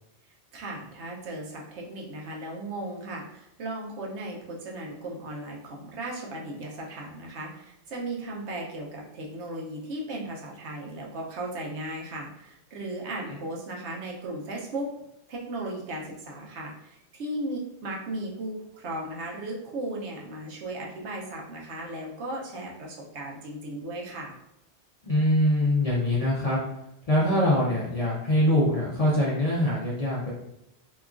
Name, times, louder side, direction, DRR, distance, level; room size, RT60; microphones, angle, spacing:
voice 1, 0.5-14.9 15.3-24.3, right 1 dB, 75° right, -2 dB, 0.9 m, -36 dB
voice 2, 25.0-26.6 27.1-30.3, left 1 dB, 50° left, -6 dB, 0.4 m, -23 dB
2.9 x 2.3 x 2.4 m, 0.83 s
omnidirectional pair, 1.2 m